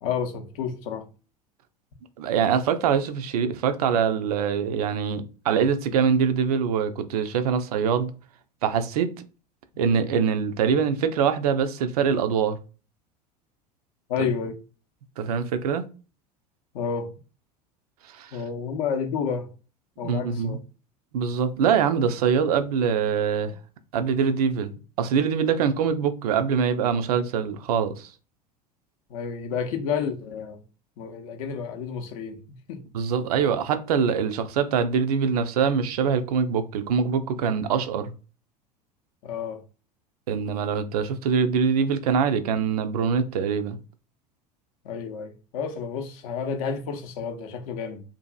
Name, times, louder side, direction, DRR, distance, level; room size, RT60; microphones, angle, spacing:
voice 1, 0.0-1.1 14.1-14.6 16.7-17.1 18.3-19.5 20.0-20.6 29.1-30.6 31.0-32.8 39.2-39.6 44.8-48.0, left 6 dB, 55° left, 0.6 m, -30 dB
voice 2, 2.2-8.1 8.6-9.1 9.8-12.6 15.2-15.8 18.1-18.3 20.0-20.6 21.1-23.5 23.9-28.1 32.9-38.1 40.3-43.8, right 6 dB, 65° right, 0.4 m, -24 dB
2.6 x 2.5 x 2.2 m
figure-of-eight pair, 75°, 21 cm